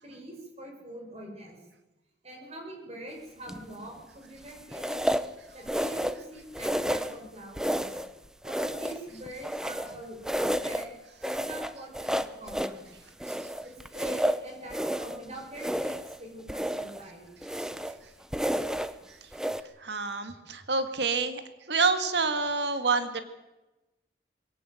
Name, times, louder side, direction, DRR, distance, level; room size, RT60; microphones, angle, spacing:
voice 1, 0.0-1.6 2.2-5.1 5.5-8.0 8.4-10.9 11.3-12.9 13.6-17.3, right 1 dB, 35° right, 1 dB, 5.6 m, -44 dB
sound 1, 3.5-3.8 4.7-5.3 5.7-6.3 6.5-7.2 7.6-8.1 8.4-10.0 10.2-10.9 11.2-12.8 13.2-15.2 15.5-16.2 16.5-17.0 17.4-18.0 18.3-18.9 19.3-19.6, equal, 5° right, 0.7 m, -31 dB
voice 2, 19.8-21.4 21.7-23.2, right 4 dB, 75° right, 9 dB, 1.9 m, -27 dB
22.0 x 17.5 x 7.8 m, 1.0 s
head